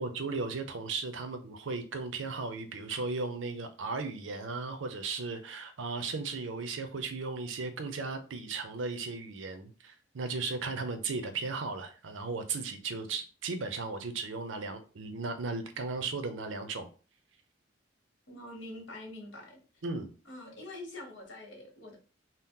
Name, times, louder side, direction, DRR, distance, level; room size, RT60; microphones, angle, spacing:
voice 1, 0.0-16.9 19.8-20.1, right 4 dB, 85° right, 8 dB, 0.5 m, -36 dB
voice 2, 18.3-19.6 20.3-22.0, left 1 dB, 80° left, 1 dB, 1.0 m, -45 dB
2.8 x 2.0 x 3.6 m, 0.36 s
head